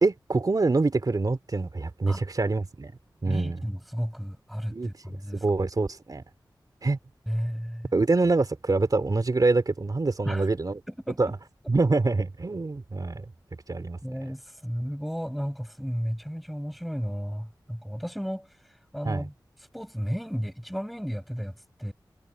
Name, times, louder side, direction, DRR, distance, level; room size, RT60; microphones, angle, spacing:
voice 1, 0.0-2.9 3.2-3.6 4.7-6.2 6.8-7.0 7.9-10.8 11.2-11.4 11.7-13.2 13.7-14.0 19.0-19.2, right 3 dB, 50° right, 3.0 m, -25 dB
voice 2, 3.3-5.4 7.3-7.9 10.2-10.5 10.9-11.2 14.0-18.5 18.9-19.3 19.7-21.5 21.8-21.9, equal, ahead, 5.5 m, -33 dB
wide cardioid pair, 80°, 8 cm